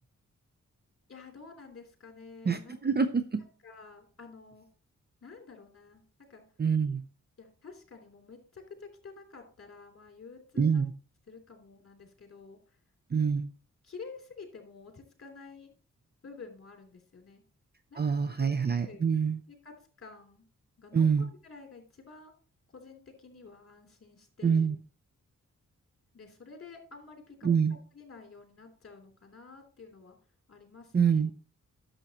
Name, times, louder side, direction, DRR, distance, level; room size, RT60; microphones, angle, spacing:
voice 1, 1.1-2.8 3.6-4.7 5.2-6.0 6.3-6.4 7.4-10.8 11.3-12.6 13.8-15.7 16.2-17.4 17.9-18.6 18.8-19.0 19.5-19.7 20.0-20.5 20.8-22.3 22.7-24.7 26.1-30.2 30.5-31.2, left 4 dB, 45° left, 3 dB, 3.1 m, -50 dB
voice 2, 2.5-3.4 6.6-7.0 10.6-10.9 13.1-13.5 18.0-19.4 20.9-21.3 24.4-24.7 27.4-27.8 30.9-31.3, right 6 dB, 35° right, 9 dB, 0.6 m, -26 dB
10.5 x 7.2 x 2.9 m, 0.37 s
cardioid pair, 75°, 30 cm